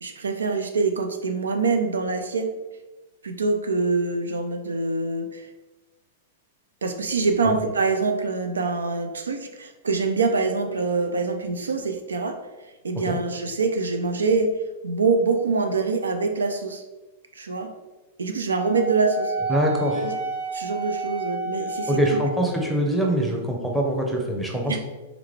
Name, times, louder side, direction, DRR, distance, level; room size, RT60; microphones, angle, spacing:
voice 1, 0.0-2.5 3.2-5.5 6.8-12.4 12.8-16.8 17.3-17.7 18.2-19.3 19.9-20.2 20.5-22.0 23.2-23.3 24.7-24.8, right 4 dB, 85° right, 6 dB, 0.4 m, -25 dB
Wind instrument woodwind instrument, 18.5-22.6, right 3 dB, 50° right, 1.1 m, -30 dB
voice 2, 19.5-20.1 21.9-24.8, right 1 dB, 5° right, 0 dB, 0.9 m, -24 dB
3.7 x 3.4 x 3.3 m, 1.1 s
hypercardioid pair, 105°, 0 cm